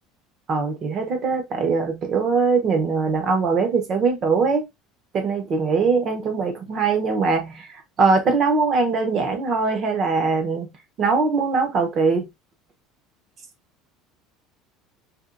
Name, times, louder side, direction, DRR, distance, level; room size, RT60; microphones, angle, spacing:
voice 1, 0.5-4.7 5.1-10.7 11.0-12.3, right 4 dB, 30° right, 0.9 m, -21 dB
4.4 x 2.9 x 2.6 m
cardioid pair, 165°, 0 cm